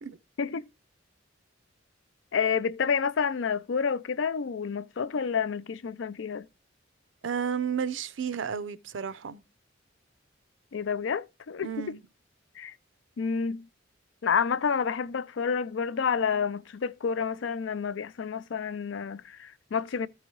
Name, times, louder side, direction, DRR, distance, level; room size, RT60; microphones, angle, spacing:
voice 1, 2.3-6.4 10.7-11.9 12.6-12.7 13.2-13.7 14.2-20.1, left 6 dB, 75° left, 0.4 m, -29 dB
voice 2, 7.2-9.4 11.6-12.0, right 7 dB, 80° right, 0.5 m, -32 dB
13.5 x 4.7 x 3.1 m
head